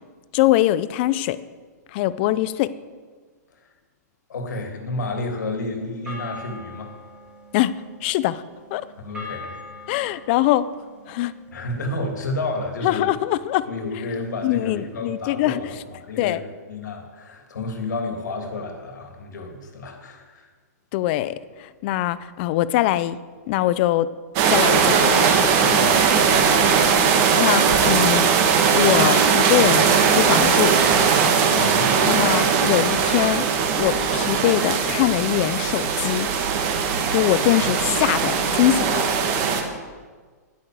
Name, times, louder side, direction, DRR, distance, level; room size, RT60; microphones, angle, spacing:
voice 1, 0.3-1.4 1.9-2.7 7.5-8.4 8.7-8.9 9.9-10.7 11.1-11.3 12.8-13.7 14.4-15.8 16.2-16.4 20.9-23.2 23.5-24.1 24.5-25.2 27.4-28.3 28.7-30.8 32.0-33.5 33.8-36.3 37.1-39.1, left 14 dB, 35° left, 16 dB, 0.5 m, -22 dB
voice 2, 4.3-6.9 9.0-9.9 11.5-13.1 13.7-20.5 25.6-26.8 31.5-32.0 37.6-37.7, left 2 dB, 80° left, 4 dB, 2.9 m, -31 dB
sound 1, 5.2-13.7, left 2 dB, 10° right, 2.1 m, -43 dB
sound 2, 24.4-39.6, right 6 dB, 35° right, 1.9 m, -19 dB
10.5 x 10.0 x 7.8 m, 1.5 s
hypercardioid pair, 150°, 9 cm